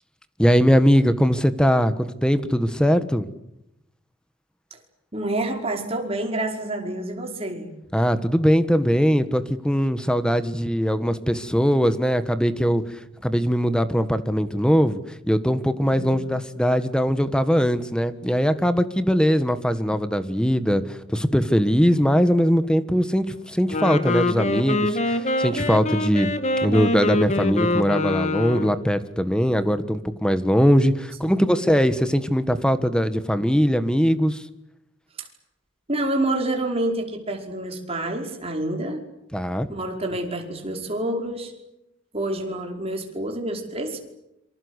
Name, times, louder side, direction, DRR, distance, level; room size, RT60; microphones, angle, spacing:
voice 1, 0.4-3.2 7.9-12.8 13.2-26.3 26.6-34.4 39.3-39.7, equal, 5° left, 12 dB, 1.4 m, -21 dB
voice 2, 5.1-7.7 15.8-16.2 31.2-31.6 35.2-35.3 35.9-39.0 39.7-41.5 42.1-44.0, right 1 dB, 30° right, 2 dB, 5.2 m, -28 dB
Wind instrument woodwind instrument, 23.6-28.9, left 2 dB, 35° left, 2.0 m, -24 dB
27.0 x 25.5 x 8.2 m, 0.85 s
head